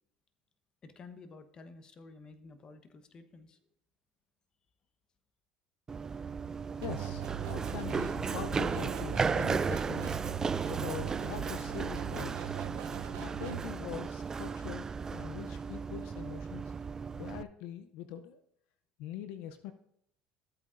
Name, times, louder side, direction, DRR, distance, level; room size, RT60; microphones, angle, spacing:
voice 1, 0.8-3.6, left 3 dB, 35° left, 11 dB, 1.0 m, -52 dB
Run, 5.9-17.4, right 5 dB, 25° right, 0.4 m, -35 dB
voice 2, 6.8-10.2 10.7-12.5 13.2-16.7 17.2-18.4 19.0-19.7, left 9 dB, 75° left, 10 dB, 0.6 m, -43 dB
sound 1, 6.8-13.7, right 13 dB, 75° right, 0.7 m, -41 dB
14.0 x 8.4 x 2.5 m, 0.72 s
supercardioid pair, 85°, 2 cm